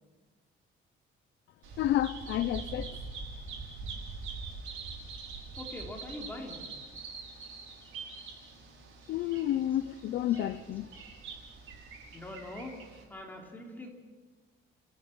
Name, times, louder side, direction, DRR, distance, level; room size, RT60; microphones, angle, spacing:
Bird vocalization bird call bird song, 1.6-13.0, right 4 dB, 85° right, 5.9 m, -44 dB
voice 1, 1.8-3.0 9.1-10.9, left 12 dB, 65° left, 12 dB, 0.7 m, -30 dB
voice 2, 5.6-6.7 7.3-8.0 9.0-9.3 10.3-10.4 10.9-11.1 12.1-13.9, left 1 dB, 10° left, 0 dB, 3.2 m, -45 dB
27.0 x 15.0 x 8.8 m, 1.4 s
cardioid pair, 180°, 20 cm